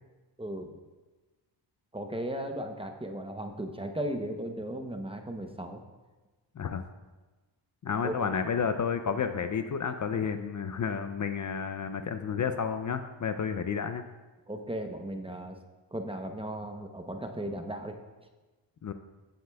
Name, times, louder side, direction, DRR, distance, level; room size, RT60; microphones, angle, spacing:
voice 1, 0.4-0.8 1.9-5.8 8.0-8.3 14.5-15.6 15.9-18.0, right 1 dB, 10° right, 5 dB, 0.8 m, -36 dB
voice 2, 7.8-14.0 18.8-18.9, left 6 dB, 45° left, 8 dB, 0.5 m, -31 dB
15.5 x 7.7 x 2.3 m, 1.2 s
cardioid pair, 95°, 45 cm